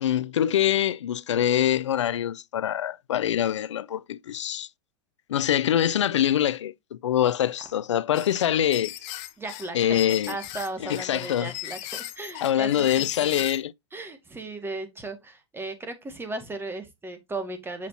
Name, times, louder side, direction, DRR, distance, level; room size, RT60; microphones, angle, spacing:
voice 1, 0.0-4.7 5.3-8.9 9.7-10.4 10.9-11.5 12.4-13.7, left 10 dB, 85° left, 0.4 m, -24 dB
sound 1, 8.1-13.6, left 14 dB, 50° left, 1.1 m, -37 dB
voice 2, 9.4-13.4 13.9-17.9, right 2 dB, 15° right, 2.0 m, -36 dB
7.2 x 5.8 x 2.8 m
hypercardioid pair, 105°, 15 cm